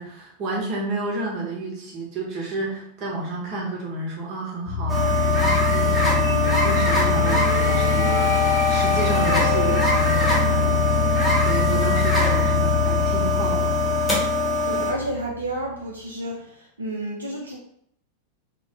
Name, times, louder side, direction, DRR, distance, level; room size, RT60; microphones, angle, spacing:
voice 1, 0.0-14.0, right 2 dB, 40° right, -3 dB, 0.9 m, -31 dB
sound 1, 4.6-15.6, left 5 dB, 60° left, 0.6 m, -24 dB
sound 2, 4.9-14.9, left 1 dB, ahead, 0.8 m, -23 dB
voice 2, 14.6-17.6, right 1 dB, 80° right, -3 dB, 0.4 m, -31 dB
2.5 x 2.1 x 2.7 m, 0.71 s
figure-of-eight pair, 90°, 0 cm